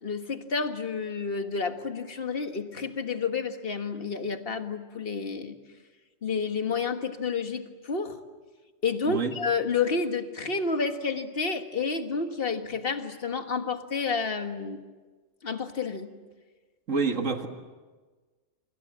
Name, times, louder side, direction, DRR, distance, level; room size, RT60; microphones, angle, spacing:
voice 1, 0.0-5.6 6.2-8.2 8.8-14.8 15.4-16.1, left 5 dB, 50° left, 7 dB, 1.8 m, -30 dB
voice 2, 16.9-17.5, right 5 dB, 85° right, 5 dB, 2.3 m, -27 dB
28.0 x 26.0 x 7.5 m, 1.3 s
omnidirectional pair, 1.3 m